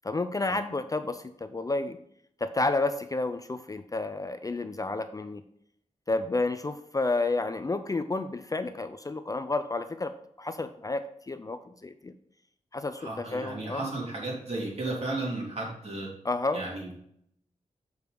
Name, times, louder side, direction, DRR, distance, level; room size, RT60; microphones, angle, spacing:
voice 1, 0.0-2.0 2.4-5.4 6.1-12.1 12.7-13.8 16.2-16.6, left 2 dB, 25° left, 10 dB, 0.4 m, -31 dB
voice 2, 13.0-16.1 16.5-16.9, right 2 dB, 50° right, -4 dB, 3.0 m, -34 dB
6.8 x 4.7 x 5.1 m, 0.70 s
wide cardioid pair, 100°, 13 cm